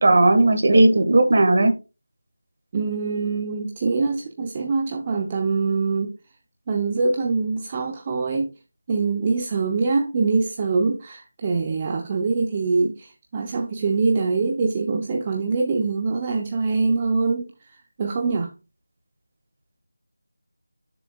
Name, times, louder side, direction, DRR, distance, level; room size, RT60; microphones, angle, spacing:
voice 1, 0.0-1.7, right 2 dB, 45° right, 1.5 m, -16 dB
voice 2, 2.7-6.1 6.7-8.5 8.9-18.5, right 4 dB, 20° right, 0.6 m, -24 dB
9.5 x 6.9 x 2.3 m
figure-of-eight pair, 170°, 0 cm